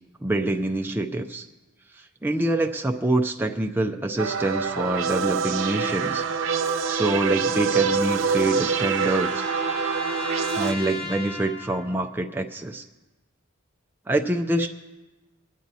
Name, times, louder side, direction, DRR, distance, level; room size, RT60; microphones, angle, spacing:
voice 1, 0.2-1.5 1.9-6.2 6.9-9.4 10.5-12.8 14.1-14.7, right 2 dB, 10° right, 3 dB, 0.4 m, -26 dB
sound 1, 4.2-10.7, right 5 dB, 90° right, 0.7 m, -25 dB
sound 2, 7.4-12.0, left 2 dB, 60° left, 2.4 m, -37 dB
23.5 x 9.1 x 2.7 m, 1.1 s
head